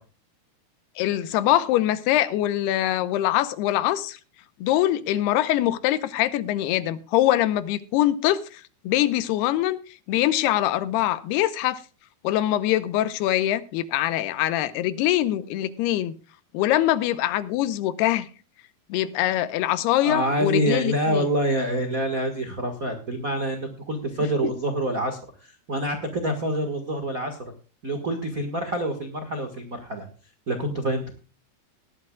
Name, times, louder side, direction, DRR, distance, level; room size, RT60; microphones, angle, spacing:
voice 1, 1.0-4.2 4.6-9.8 10.1-11.8 12.2-16.1 16.5-18.3 18.9-21.3, left 13 dB, 90° left, 14 dB, 2.9 m, -23 dB
voice 2, 20.0-27.4 27.8-30.1 30.5-31.1, right 1 dB, 70° right, 4 dB, 0.8 m, -26 dB
18.5 x 12.0 x 2.3 m, 0.35 s
omnidirectional pair, 4.6 m